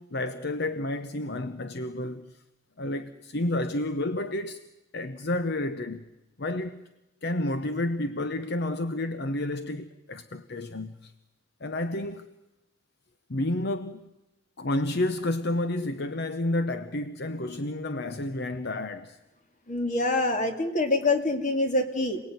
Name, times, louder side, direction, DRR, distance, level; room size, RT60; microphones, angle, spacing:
voice 1, 0.0-2.4 2.8-4.6 4.9-6.1 6.4-6.8 7.2-11.1 11.6-12.3 13.3-14.1 14.6-19.2, left 1 dB, 55° left, 0.9 m, -30 dB
voice 2, 19.7-22.2, left 2 dB, 40° left, 2.4 m, -25 dB
27.5 x 19.0 x 9.4 m
head